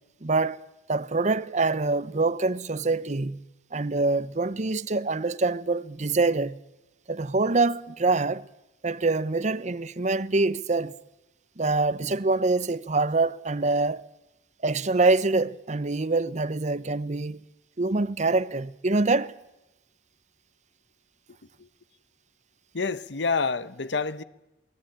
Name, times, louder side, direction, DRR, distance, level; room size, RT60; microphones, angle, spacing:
voice 1, 0.2-3.4 3.7-6.6 7.1-8.5 8.8-11.0 11.6-14.0 14.6-17.4 17.8-19.3, right 3 dB, 40° right, 0.8 m, -25 dB
voice 2, 22.7-24.2, left 4 dB, 80° left, 1.1 m, -28 dB
27.5 x 20.0 x 9.0 m
head